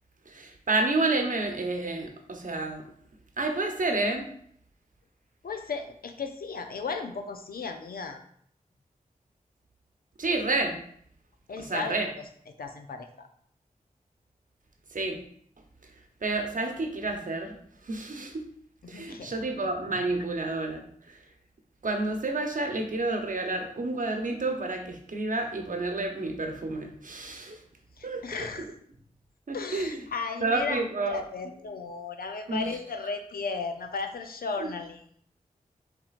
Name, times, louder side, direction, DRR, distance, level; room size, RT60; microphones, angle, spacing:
voice 1, 0.3-2.8 3.4-4.2 10.2-10.8 11.6-12.1 14.9-15.2 16.2-17.6 17.9-18.4 18.9-21.2 21.8-27.6 28.0-28.5 29.5-30.0 30.4-31.2 32.5-32.7 34.6-34.7, right 2 dB, 60° right, 3 dB, 0.9 m, -30 dB
voice 2, 5.4-8.2 11.5-12.1 12.6-13.3 18.8-19.3 28.0-28.7 29.5-30.8 31.1-35.0, left 4 dB, 80° left, 6 dB, 0.6 m, -35 dB
5.8 x 3.6 x 2.4 m, 0.64 s
cardioid pair, 45°, 15 cm